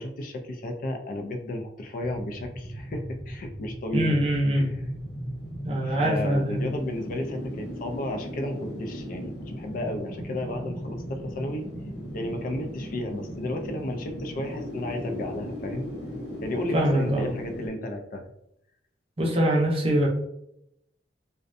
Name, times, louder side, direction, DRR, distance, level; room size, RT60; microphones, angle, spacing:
voice 1, 0.0-4.2 4.5-4.6 5.8-11.6 12.1-15.9 16.4-18.3, left 1 dB, 50° left, 5 dB, 0.3 m, -33 dB
sound 1, 2.0-17.7, equal, 85° left, 0.8 m, -37 dB
voice 2, 3.9-4.7 5.6-6.7 16.7-17.3 19.2-20.1, right 1 dB, 35° right, -1 dB, 0.5 m, -23 dB
2.5 x 2.1 x 2.5 m, 0.78 s
head